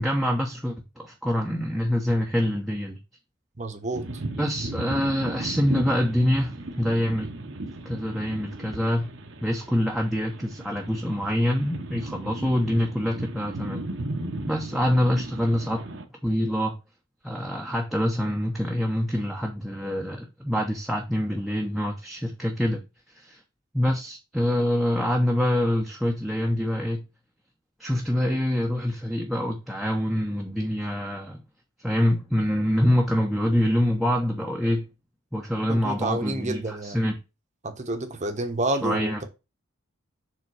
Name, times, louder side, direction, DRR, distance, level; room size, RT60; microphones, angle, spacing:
voice 1, 0.0-3.0 4.4-7.3 7.8-9.1 9.4-13.8 14.5-15.8 16.2-16.8 17.2-22.8 23.1-23.4 23.7-27.0 27.8-31.4 31.8-34.9 35.3-37.2 38.8-39.2, equal, ahead, 0.8 m, -25 dB
voice 2, 3.6-4.1 35.7-37.0 37.6-39.2, right 2 dB, 35° right, 1.0 m, -29 dB
sound 1, 3.9-16.0, right 2 dB, 60° right, 1.0 m, -36 dB
7.0 x 3.7 x 4.8 m
head